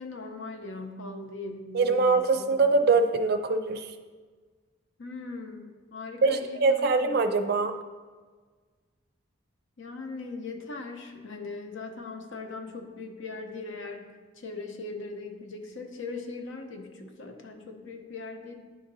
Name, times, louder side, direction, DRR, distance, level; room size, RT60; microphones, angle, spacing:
voice 1, 0.0-2.8 5.0-7.2 9.8-14.1 14.3-18.5, left 3 dB, 70° left, 4 dB, 0.7 m, -40 dB
voice 2, 1.7-3.9 6.2-7.7, right 3 dB, 50° right, 7 dB, 0.4 m, -23 dB
9.8 x 3.8 x 2.7 m, 1.5 s
head